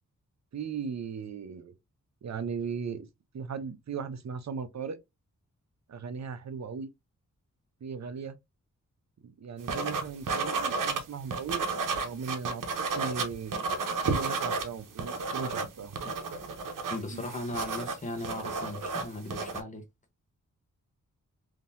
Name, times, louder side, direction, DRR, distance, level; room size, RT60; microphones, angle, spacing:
voice 1, 0.5-1.7 2.2-3.1 3.3-5.0 5.9-6.9 7.8-8.4 9.2-11.7 12.0-13.7 14.0-16.0 17.1-17.2, right 6 dB, 60° right, 0.6 m, -37 dB
sound 1, 9.7-11.0 11.3-14.6 14.9-19.6, right 4 dB, 85° right, 0.8 m, -32 dB
voice 2, 16.9-19.8, left 1 dB, 25° left, 0.9 m, -37 dB
3.7 x 2.8 x 2.5 m
wide cardioid pair, 120°, 31 cm